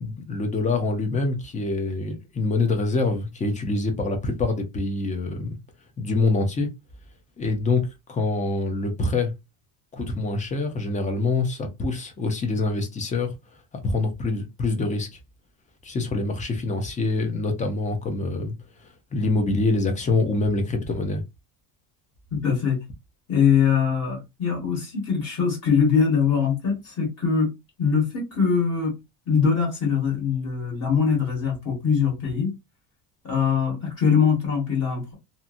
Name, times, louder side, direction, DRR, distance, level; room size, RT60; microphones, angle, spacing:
voice 1, 0.0-5.5 6.0-6.7 7.4-9.3 9.9-13.3 13.7-15.1 15.8-18.5 18.8-21.2, left 3 dB, 20° left, 0.6 m, -25 dB
voice 2, 22.3-22.8 23.3-27.5 27.8-29.0 29.3-32.5 33.2-35.1, left 6 dB, 35° left, 1.4 m, -22 dB
2.8 x 2.6 x 2.5 m
cardioid pair, 150°, 40 cm